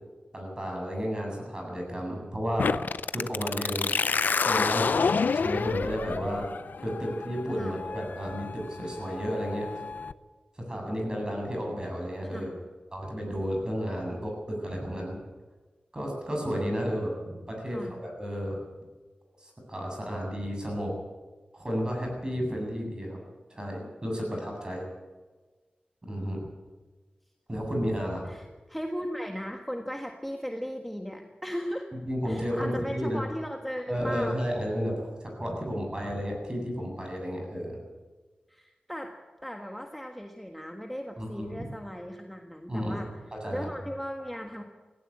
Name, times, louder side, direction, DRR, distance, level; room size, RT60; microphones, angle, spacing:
voice 1, 0.3-2.7 3.1-3.9 4.4-6.4 6.8-9.7 10.6-12.5 12.9-15.2 15.9-18.6 19.4-20.9 21.5-23.2 23.5-24.9 26.1-26.4 27.5-28.3 32.1-33.2 33.9-37.8 41.2-41.5 42.7-43.7, equal, 25° right, 1 dB, 7.7 m, -32 dB
sound 1, 2.6-10.1, left 5 dB, 85° left, 0.6 m, -29 dB
voice 2, 12.2-12.6 17.6-18.0 28.3-31.9 32.2-34.4 38.5-39.1 39.4-43.1 43.5-44.6, equal, ahead, 3 dB, 1.6 m, -37 dB
17.5 x 16.5 x 8.8 m, 1.3 s
wide cardioid pair, 90°, 3 cm